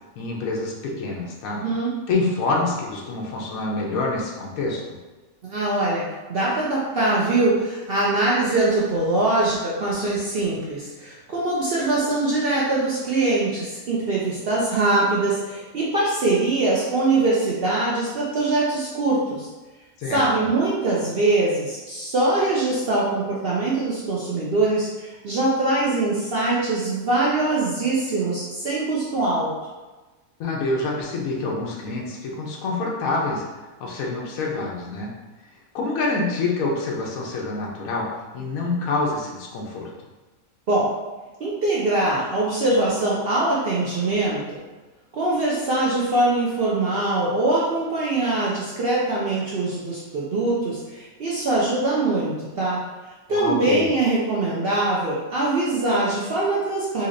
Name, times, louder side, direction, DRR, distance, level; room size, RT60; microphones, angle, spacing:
voice 1, 0.2-1.6 2.1-5.0 20.0-20.2 30.4-33.4 33.8-35.1 35.7-38.0 38.3-39.9 53.3-53.8, left 3 dB, 75° left, -2 dB, 1.1 m, -26 dB
voice 2, 1.6-1.9 5.4-19.5 20.1-29.5 40.7-40.9 41.4-44.6 45.1-52.8 53.3-57.1, right 2 dB, 60° right, -6 dB, 0.6 m, -23 dB
4.0 x 2.8 x 2.5 m, 1.2 s
omnidirectional pair, 1.6 m